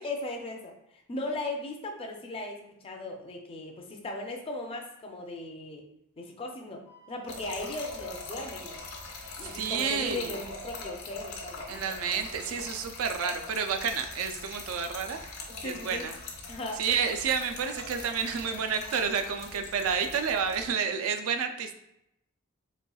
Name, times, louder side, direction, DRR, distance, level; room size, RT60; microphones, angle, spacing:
voice 1, 0.0-5.8 6.2-8.8 9.4-11.9 15.5-16.1 16.5-16.8, left 2 dB, 25° left, 2 dB, 0.4 m, -38 dB
Wind instrument woodwind instrument, 6.8-10.6, right 1 dB, 90° right, 1.0 m, -57 dB
Trickle dribble / Fill (with liquid), 7.3-20.7, left 3 dB, 65° left, 0.7 m, -42 dB
voice 2, 9.4-10.3 11.7-15.2 15.6-16.1 16.8-21.7, right 6 dB, 70° right, 7 dB, 0.4 m, -30 dB
4.1 x 3.0 x 2.3 m, 0.80 s
head